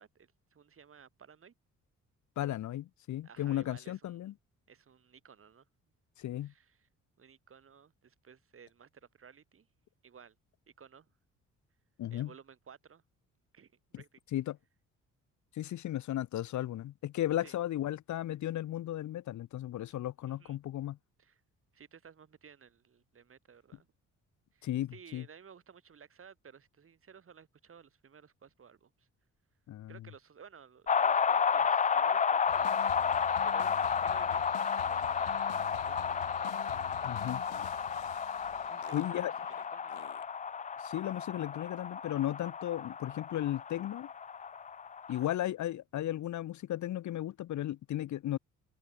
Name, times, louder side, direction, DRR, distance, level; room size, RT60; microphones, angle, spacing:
voice 1, 0.0-1.5 3.2-4.3 4.7-5.6 6.4-6.9 7.2-9.7 10.0-10.3 10.8-11.1 12.1-13.0 13.5-14.2 17.4-17.6 20.3-20.6 21.2-21.4 21.7-23.9 24.5-29.1 29.9-34.5 34.8-36.3 38.6-39.2 39.6-40.1 45.1-45.2, right 7 dB, 45° right, 5.0 m, -56 dB
voice 2, 2.4-4.3 6.2-6.5 12.0-12.3 13.9-14.0 14.3-14.6 15.5-21.0 24.6-25.2 29.7-29.9 37.1-37.4 38.9-39.3 40.8-44.1 45.1-48.4, left 13 dB, 70° left, 1.3 m, -35 dB
sound 1, 30.9-45.3, left 6 dB, 25° left, 0.5 m, -32 dB
sound 2, 32.5-40.5, left 18 dB, 90° left, 1.1 m, -48 dB
cardioid pair, 90°, 30 cm